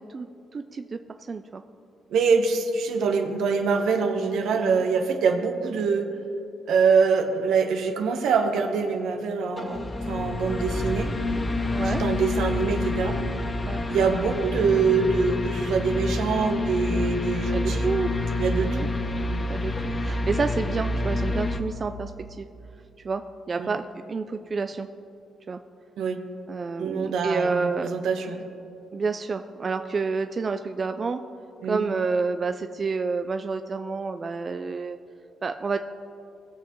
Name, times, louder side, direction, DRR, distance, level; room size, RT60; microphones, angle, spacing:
voice 1, 0.5-1.0 1.3-1.6 4.5-4.8 11.7-12.0 13.7-13.8 17.5-18.1 18.6-18.9 19.5-22.1 22.4-22.5 23.0-23.2 23.5-23.8 24.1-24.9 25.5-25.6 26.5-27.9 28.9-31.2 31.7-35.0 35.4-35.8, right 4 dB, 35° right, 8 dB, 0.4 m, -29 dB
voice 2, 2.1-6.1 6.7-11.1 11.8-13.2 13.9-17.9 18.4-18.9 23.6-23.7 26.0-26.2 26.8-28.4 31.6-31.8, right 5 dB, 75° right, 5 dB, 1.0 m, -24 dB
sound 1, 9.6-21.6, left 2 dB, 30° left, 0.7 m, -28 dB
19.0 x 7.1 x 3.1 m, 2.8 s
cardioid pair, 90°, 0 cm